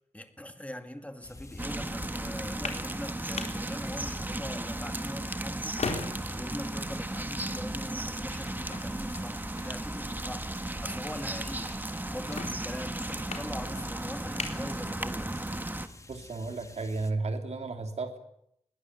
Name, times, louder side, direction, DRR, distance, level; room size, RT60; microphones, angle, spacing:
voice 1, 0.1-15.3, left 1 dB, 10° left, 7 dB, 2.2 m, -42 dB
sound 1, 1.2-17.1, left 2 dB, 25° left, 1.9 m, -50 dB
sound 2, 1.6-15.9, right 1 dB, 15° right, 1.5 m, -35 dB
sound 3, 2.3-15.4, left 4 dB, 80° left, 3.7 m, -43 dB
voice 2, 16.1-18.2, right 3 dB, 75° right, 6 dB, 3.2 m, -33 dB
21.0 x 19.0 x 9.7 m, 0.75 s
wide cardioid pair, 115°, 11 cm